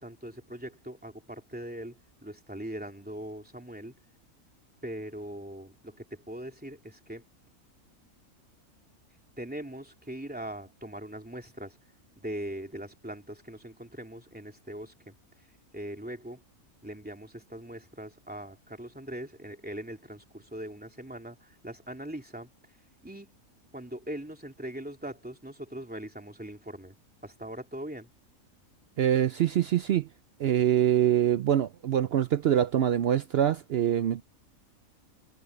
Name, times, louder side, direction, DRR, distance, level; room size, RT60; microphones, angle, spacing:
voice 1, 0.0-3.9 4.8-7.2 9.4-11.8 12.2-15.5 15.7-16.4 16.8-22.8 23.0-23.3 23.7-27.0 27.2-28.1, right 1 dB, 5° right, 3.0 m, -41 dB
voice 2, 29.0-30.1 30.4-34.2, right 10 dB, 70° right, 0.6 m, -24 dB
omnidirectional pair, 1.5 m